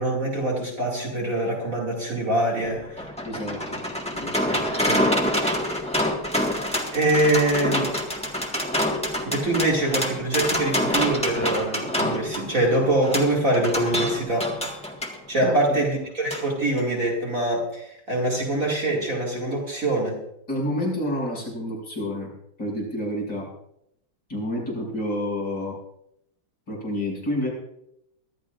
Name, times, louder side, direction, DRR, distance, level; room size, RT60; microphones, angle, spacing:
voice 1, 0.0-3.0 4.9-5.0 6.9-7.9 9.2-14.5 15.3-20.2, right 1 dB, 40° right, -3 dB, 2.8 m, -24 dB
sound 1, 2.6-15.2 16.3-16.4 16.8-16.9, equal, 5° left, 1.3 m, -27 dB
voice 2, 3.2-3.8 4.1-4.7 15.4-16.0 20.5-22.3 22.6-23.5 24.3-25.7 26.7-27.5, left 1 dB, 50° left, -4 dB, 6.7 m, -29 dB
23.5 x 12.5 x 2.5 m, 0.78 s
omnidirectional pair, 2.3 m